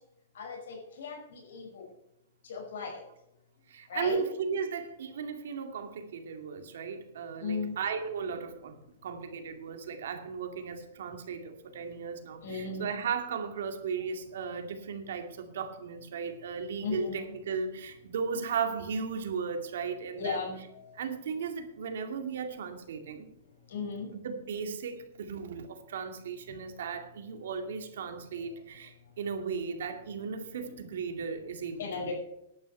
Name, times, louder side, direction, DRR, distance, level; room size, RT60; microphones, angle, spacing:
voice 1, 0.3-1.9 2.5-2.9 3.9-4.3 7.4-7.7 12.4-12.9 16.8-17.4 20.2-21.0 23.7-24.1 30.6-30.7 31.8-32.1, left 5 dB, 75° left, -1 dB, 5.5 m, -36 dB
voice 2, 3.7-20.5 20.9-23.3 24.1-32.1, right 6 dB, 70° right, 6 dB, 2.3 m, -36 dB
11.5 x 9.1 x 6.6 m, 0.82 s
supercardioid pair, 170°, 0 cm